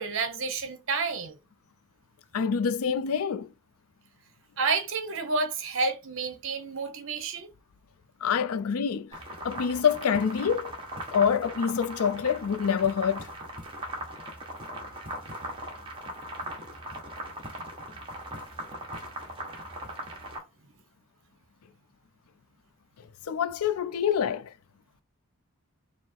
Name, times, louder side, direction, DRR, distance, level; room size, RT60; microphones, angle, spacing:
voice 1, 0.0-1.4 4.6-7.5, right 4 dB, 60° right, 0.9 m, -30 dB
voice 2, 2.3-3.5 8.2-10.7 11.1-13.3 23.3-24.5, left 7 dB, 80° left, 0.4 m, -26 dB
sound 1, 9.1-20.4, right 1 dB, 25° right, 1.3 m, -39 dB
4.6 x 2.0 x 4.5 m
head